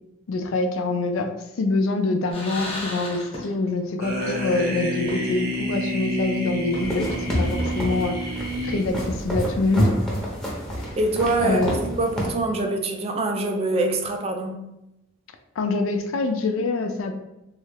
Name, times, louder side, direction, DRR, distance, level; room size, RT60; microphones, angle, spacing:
voice 1, 0.3-1.3 1.6-10.0 11.4-11.7 15.6-17.2, left 3 dB, 80° left, 6 dB, 0.4 m, -25 dB
sound 1, 2.3-3.9 4.2-4.3 5.1-5.6 6.0-6.1 6.7-8.7, left 1 dB, 30° left, 1.0 m, -36 dB
sound 2, 4.0-9.3, right 1 dB, 50° right, 0.8 m, -29 dB
sound 3, 6.8-12.3, equal, 5° left, 0.7 m, -28 dB
voice 2, 11.0-14.7, right 2 dB, 30° right, 3 dB, 0.4 m, -24 dB
3.1 x 2.3 x 3.2 m, 0.91 s
head